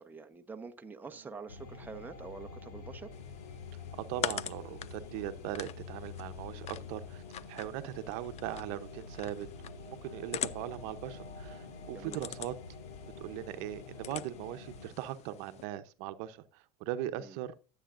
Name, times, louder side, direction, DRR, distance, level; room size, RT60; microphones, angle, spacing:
voice 1, 0.0-3.1 11.9-12.2 17.2-17.4, right 4 dB, 10° right, 0.7 m, -46 dB
sound 1, 1.5-14.9, left 4 dB, 80° left, 1.9 m, -47 dB
sound 2, 3.1-15.6, left 11 dB, 35° left, 0.5 m, -44 dB
voice 2, 3.9-7.2 7.5-9.5 9.8-12.5 13.0-17.6, right 13 dB, 65° right, 0.8 m, -40 dB
12.5 x 8.1 x 2.5 m
supercardioid pair, 110°, 20 cm